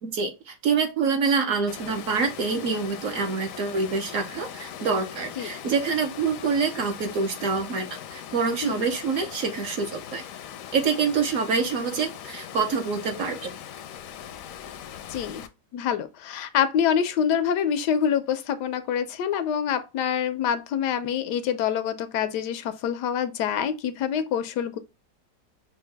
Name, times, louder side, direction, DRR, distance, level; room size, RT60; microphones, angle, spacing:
voice 1, 0.0-10.2 10.7-13.5, right 5 dB, 60° right, 1.0 m, -26 dB
Water, 1.7-15.5, left 9 dB, 70° left, 0.8 m, -40 dB
voice 2, 15.1-15.4 15.7-24.8, left 8 dB, 90° left, 1.2 m, -26 dB
5.5 x 2.3 x 3.3 m
omnidirectional pair, 1.7 m